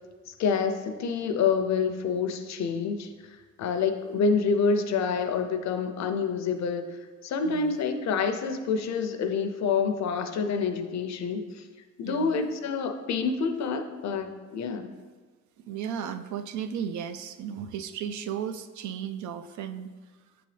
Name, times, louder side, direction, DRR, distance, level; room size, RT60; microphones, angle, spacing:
voice 1, 0.3-3.1 3.6-11.6 12.0-14.9, left 5 dB, 65° left, 8 dB, 0.6 m, -27 dB
voice 2, 7.4-7.8 12.0-12.4 15.7-19.9, right 8 dB, 70° right, 9 dB, 0.5 m, -35 dB
7.5 x 3.9 x 3.3 m, 1.4 s
cardioid pair, 90°, 30 cm